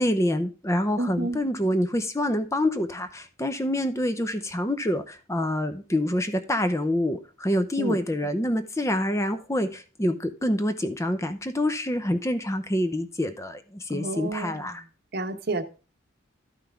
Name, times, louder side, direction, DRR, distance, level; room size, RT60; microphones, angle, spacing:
voice 1, 0.0-14.8, left 1 dB, 15° left, 0.7 m, -26 dB
voice 2, 1.0-1.4 7.8-8.0 13.9-14.6 15.1-15.6, right 2 dB, 55° right, 1.0 m, -30 dB
12.5 x 5.8 x 3.4 m
head